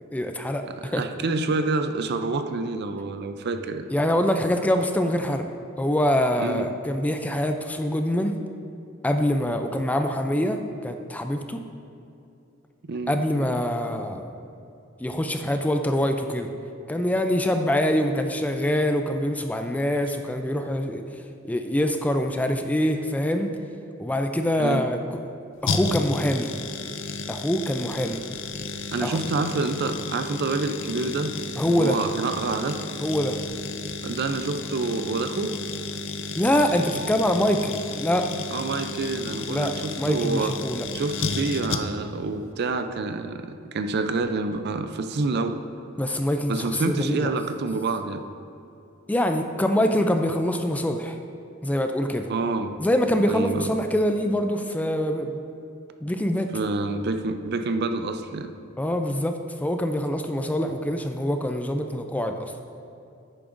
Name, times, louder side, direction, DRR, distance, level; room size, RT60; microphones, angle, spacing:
voice 1, 0.1-1.0 3.9-5.4 5.8-8.4 9.0-11.6 13.1-14.3 15.0-16.5 16.9-21.0 21.4-23.5 24.0-25.0 25.6-26.5 27.3-28.2 29.0-29.2 31.6-32.0 33.0-33.4 36.3-38.3 39.5-39.7 40.0-40.9 46.0-47.3 49.1-51.2 51.6-52.3 52.8-55.4 56.0-56.5 58.8-62.5, equal, 5° left, 5 dB, 0.3 m, -24 dB
voice 2, 0.8-3.9 6.4-6.7 12.8-13.1 24.6-24.8 28.9-31.3 31.6-32.8 34.0-35.5 38.5-40.6 40.9-45.6 46.5-48.2 52.3-52.7 53.3-53.7 56.5-58.5, right 3 dB, 55° right, 8 dB, 0.4 m, -27 dB
sound 1, 25.7-42.2 42.4-42.5, left 4 dB, 65° left, 0.5 m, -33 dB
10.5 x 8.7 x 2.6 m, 2.7 s
head